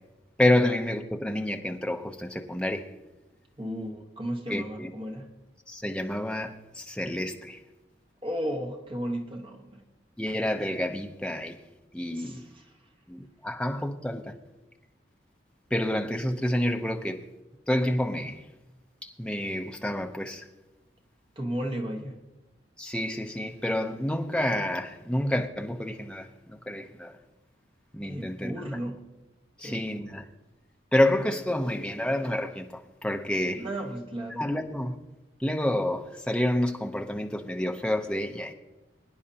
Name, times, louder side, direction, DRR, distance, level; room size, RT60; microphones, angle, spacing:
voice 1, 0.4-2.9 4.5-4.9 5.7-7.6 10.2-11.6 11.9-12.5 13.1-14.3 15.7-17.2 17.7-18.4 19.0-20.5 22.8-27.1 27.9-28.5 29.6-30.2 30.9-33.6 34.4-35.0 35.4-38.5, left 1 dB, 5° left, 0.7 m, -28 dB
voice 2, 3.6-5.3 8.2-9.8 12.1-12.8 21.3-22.2 28.0-29.0 29.6-30.1 33.6-34.5, equal, 30° right, 1.3 m, -34 dB
23.0 x 9.9 x 2.8 m
head